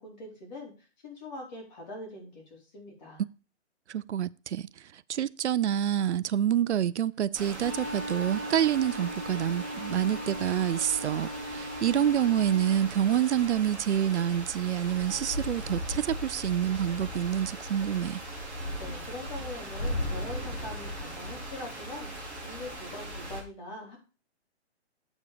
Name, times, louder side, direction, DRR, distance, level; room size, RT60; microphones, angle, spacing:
voice 1, 0.0-3.2 18.8-24.0, left 2 dB, 35° left, 4.3 m, -43 dB
voice 2, 3.9-18.2, right 10 dB, 70° right, 0.5 m, -27 dB
sound 1, 7.3-23.4, equal, 5° left, 0.8 m, -38 dB
Wind instrument woodwind instrument, 7.5-12.9, equal, 20° right, 0.4 m, -38 dB
8.4 x 7.3 x 5.0 m
hypercardioid pair, 165°, 36 cm